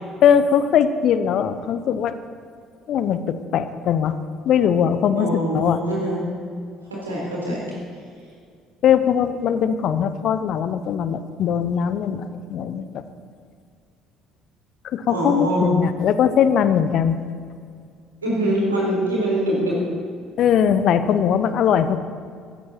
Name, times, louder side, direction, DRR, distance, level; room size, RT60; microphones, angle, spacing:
voice 1, 0.2-2.2 2.9-4.2 4.4-5.3 5.5-5.8 8.8-13.0 14.8-17.2 20.4-22.0, left 8 dB, 55° left, 12 dB, 0.8 m, -20 dB
voice 2, 5.2-6.2 6.9-7.7 15.1-15.7 18.2-19.8, equal, 85° right, -4 dB, 4.0 m, -23 dB
15.5 x 14.0 x 4.5 m, 2.2 s
figure-of-eight pair, 55°, 0 cm